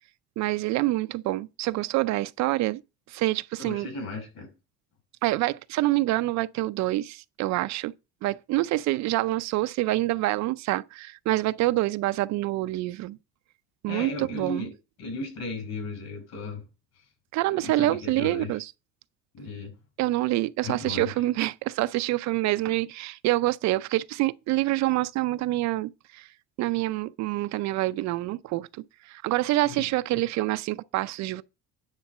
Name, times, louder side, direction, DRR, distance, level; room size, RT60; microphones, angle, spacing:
voice 1, 0.4-2.8 3.1-3.9 5.2-7.9 8.2-13.2 13.8-14.6 17.3-18.7 20.0-26.3 26.6-28.7 29.1-31.4, right 17 dB, 60° right, 0.5 m, -26 dB
voice 2, 3.6-4.5 13.9-14.7 15.0-16.6 17.5-18.5 19.3-19.7 20.6-21.1 29.6-29.9 30.1-30.3, left 2 dB, 55° left, 5.6 m, -35 dB
9.7 x 3.9 x 7.2 m
cardioid pair, 140°, 32 cm